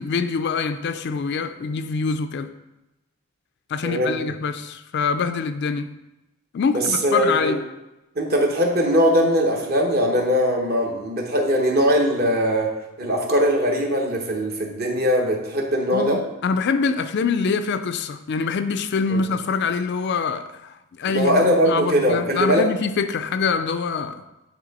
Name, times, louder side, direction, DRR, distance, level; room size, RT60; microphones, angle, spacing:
voice 1, 0.0-2.5 3.7-5.9 6.5-7.6 15.9-24.2, left 5 dB, 50° left, 0.3 m, -25 dB
voice 2, 3.8-4.2 6.7-7.6 8.2-12.7 13.0-16.2 19.1-19.2 21.1-22.6, equal, 45° right, 1.0 m, -20 dB
8.8 x 3.6 x 4.1 m
head